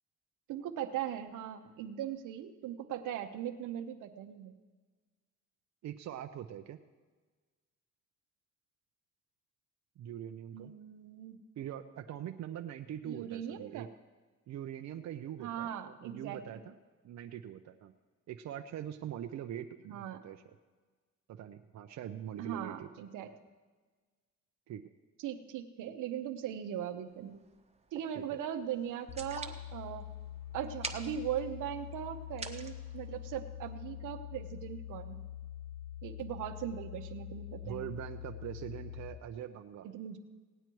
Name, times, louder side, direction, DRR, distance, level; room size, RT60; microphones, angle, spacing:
voice 1, 0.5-4.5 10.5-11.4 13.0-13.9 15.4-16.6 19.9-20.2 22.4-23.3 25.2-27.4 27.9-30.1 30.5-35.2 36.0-37.9 39.8-40.2, right 10 dB, 85° right, 7 dB, 0.9 m, -39 dB
voice 2, 5.8-6.8 10.0-10.7 11.6-13.9 14.5-16.8 17.0-17.9 18.3-20.4 21.3-22.9 24.7-24.8 28.2-28.4 37.6-39.9, right 10 dB, 65° right, 6 dB, 0.6 m, -43 dB
sound 1, 27.1-33.7, right 4 dB, 20° right, 1.1 m, -48 dB
sound 2, 29.1-39.1, left 11 dB, 45° left, 1.2 m, -45 dB
17.5 x 9.0 x 4.6 m, 1.4 s
cardioid pair, 90°, 30 cm